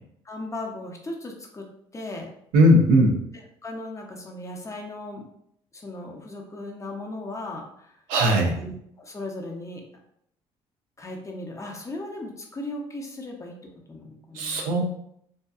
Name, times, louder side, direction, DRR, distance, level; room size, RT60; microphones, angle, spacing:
voice 1, 0.2-1.6 1.9-2.3 3.6-5.3 5.7-7.9 8.5-9.8 11.0-13.5 13.9-14.7, left 2 dB, 20° left, 1 dB, 0.6 m, -37 dB
voice 2, 2.5-3.2 8.1-8.6 14.3-14.8, equal, 80° right, 2 dB, 0.5 m, -18 dB
2.6 x 2.2 x 2.4 m, 0.72 s
supercardioid pair, 70°, 13 cm